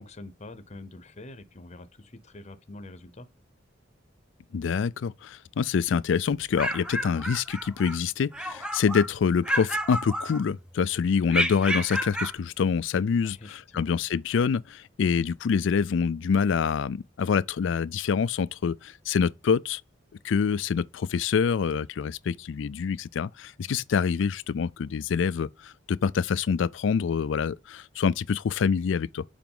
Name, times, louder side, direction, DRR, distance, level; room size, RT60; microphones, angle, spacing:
voice 1, 0.0-3.3 13.2-13.9 23.6-23.8, left 2 dB, 35° left, 0.8 m, -45 dB
voice 2, 4.5-19.8 20.2-29.2, left 6 dB, 70° left, 0.4 m, -26 dB
sound 1, 6.3-8.0 8.3-9.1 9.4-10.7 11.3-12.4, equal, 5° right, 0.6 m, -31 dB
7.0 x 4.7 x 3.8 m
head